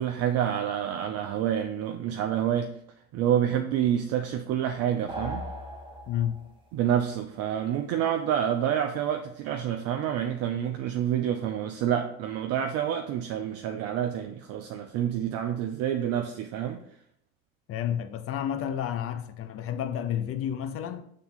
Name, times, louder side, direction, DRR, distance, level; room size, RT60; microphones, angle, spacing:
voice 1, 0.0-2.8 3.1-5.5 6.7-16.8, right 10 dB, 40° right, 0.5 m, -28 dB
sound 1, 5.1-6.6, equal, 10° right, 1.3 m, -38 dB
voice 2, 6.1-6.4 17.7-21.0, left 10 dB, 35° left, 0.6 m, -30 dB
6.9 x 3.6 x 3.8 m
figure-of-eight pair, 65°, 42 cm